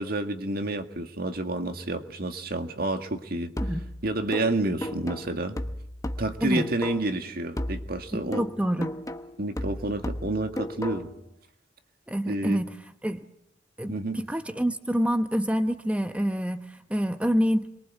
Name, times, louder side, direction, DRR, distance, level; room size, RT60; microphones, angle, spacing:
voice 1, 0.0-3.5 4.0-5.6 6.2-8.5 9.4-11.1 12.3-12.6 13.9-14.2, right 2 dB, 55° right, 7 dB, 2.0 m, -29 dB
sound 1, 3.6-7.2 7.6-11.2, left 1 dB, 20° left, 1.1 m, -35 dB
voice 2, 8.1-8.9 12.1-12.7 13.0-13.2 13.8-17.7, equal, 5° right, 8 dB, 0.9 m, -27 dB
28.0 x 23.0 x 8.3 m, 0.76 s
head